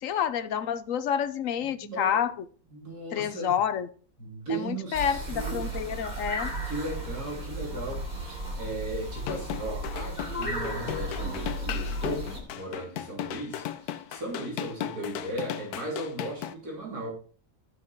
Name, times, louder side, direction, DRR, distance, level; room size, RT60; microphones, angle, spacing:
voice 1, 0.0-2.5 3.1-3.9 4.5-6.5, left 8 dB, 65° left, 1.1 m, -29 dB
voice 2, 1.6-2.3 2.7-3.6 4.2-5.7 6.6-17.1, right 1 dB, 85° right, 3.5 m, -37 dB
sound 1, 4.9-12.4, right 1 dB, 30° right, 3.0 m, -34 dB
sound 2, 9.2-16.5, left 11 dB, 90° left, 1.2 m, -36 dB
12.5 x 6.0 x 4.5 m
omnidirectional pair, 1.6 m